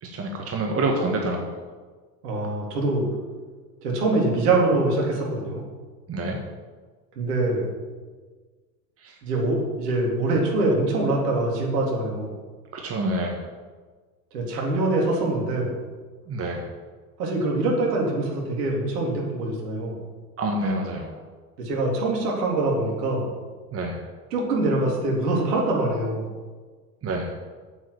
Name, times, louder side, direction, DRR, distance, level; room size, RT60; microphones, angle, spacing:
voice 1, 0.0-1.5 6.1-6.4 9.0-9.2 12.7-13.4 16.3-16.7 20.4-21.2 23.7-24.0 27.0-27.4, right 2 dB, 30° right, 1 dB, 1.7 m, -27 dB
voice 2, 2.2-3.1 3.8-5.6 7.2-7.7 9.2-12.4 14.3-15.8 17.2-20.0 21.6-23.3 24.3-26.3, right 2 dB, 65° right, -2 dB, 3.7 m, -24 dB
7.9 x 7.9 x 8.7 m, 1.4 s
hypercardioid pair, 80°, 49 cm